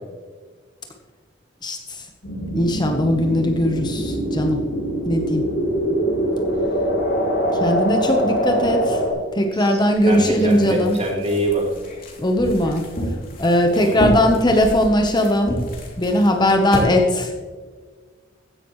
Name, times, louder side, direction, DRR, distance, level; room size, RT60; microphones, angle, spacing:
voice 1, 1.6-2.0 2.5-4.6 5.0-5.5 7.6-9.0 9.3-11.0 12.2-12.9 13.4-15.5 16.0-17.4, left 1 dB, 20° left, 3 dB, 1.0 m, -19 dB
sound 1, 2.2-9.1, equal, 75° left, 4.1 m, -23 dB
voice 2, 9.5-11.7 13.7-14.0, right 1 dB, 35° right, -1 dB, 2.9 m, -24 dB
sound 2, 9.9-16.9, equal, 50° left, 3.0 m, -30 dB
15.5 x 11.0 x 3.2 m, 1.5 s
head